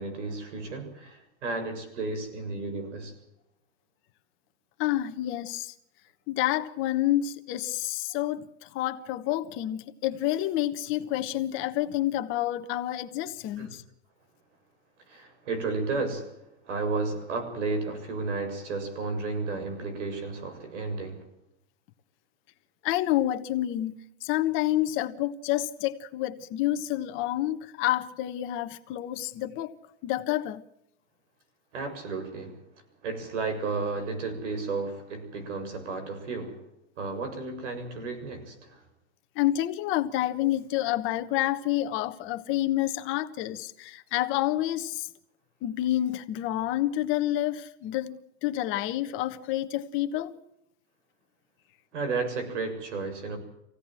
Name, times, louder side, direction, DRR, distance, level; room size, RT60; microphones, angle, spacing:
voice 1, 0.0-3.2 13.6-13.7 15.1-21.3 31.7-32.6 33.0-36.6 37.0-38.8 51.9-53.4, right 3 dB, 85° right, 7.2 m, -33 dB
voice 2, 4.8-5.7 6.3-13.8 22.8-29.7 30.0-30.6 39.3-45.1 45.6-50.3, left 14 dB, 35° left, 1.2 m, -29 dB
26.0 x 17.0 x 7.6 m
supercardioid pair, 150°, 35 cm